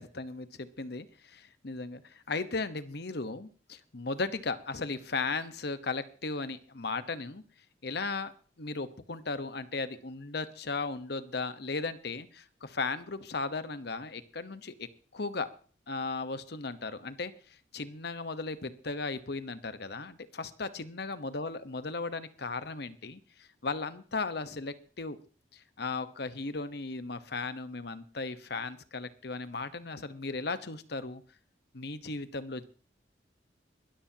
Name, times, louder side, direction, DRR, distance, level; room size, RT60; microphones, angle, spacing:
voice 1, 0.0-7.4 7.8-8.3 8.6-14.9 15.1-15.5 15.9-17.3 17.7-25.2 25.5-31.2 31.7-32.6, left 3 dB, 65° left, 12 dB, 1.1 m, -36 dB
22.0 x 13.5 x 2.9 m, 0.39 s
head